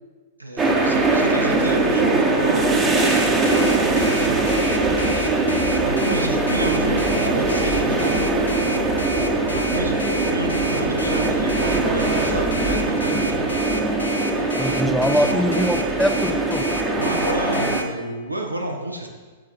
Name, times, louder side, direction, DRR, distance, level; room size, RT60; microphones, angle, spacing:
voice 1, 0.4-2.9 4.0-5.4 5.8-8.3 9.5-13.5 15.1-15.4 16.9-19.1, right 1 dB, 85° right, 2 dB, 1.2 m, -30 dB
sound 1, 0.6-17.8, right 2 dB, 15° right, 1.1 m, -21 dB
Alarm, 3.0-17.8, left 1 dB, 80° left, 0.9 m, -31 dB
voice 2, 14.6-16.8, equal, ahead, 8 dB, 0.6 m, -23 dB
7.6 x 7.2 x 4.3 m, 1.4 s
figure-of-eight pair, 105°, 0 cm